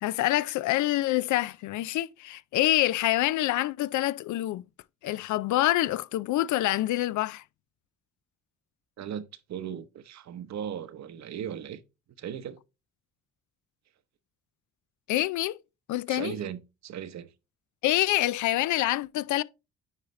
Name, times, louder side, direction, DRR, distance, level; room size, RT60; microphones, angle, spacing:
voice 1, 0.0-4.6 5.0-7.4 15.1-15.6 15.9-16.4 17.8-19.4, left 15 dB, 75° left, 0.5 m, -26 dB
voice 2, 9.5-11.8 12.2-12.6 16.1-17.3, right 9 dB, 65° right, 0.9 m, -37 dB
9.7 x 4.9 x 3.1 m
cardioid pair, 90°, 30 cm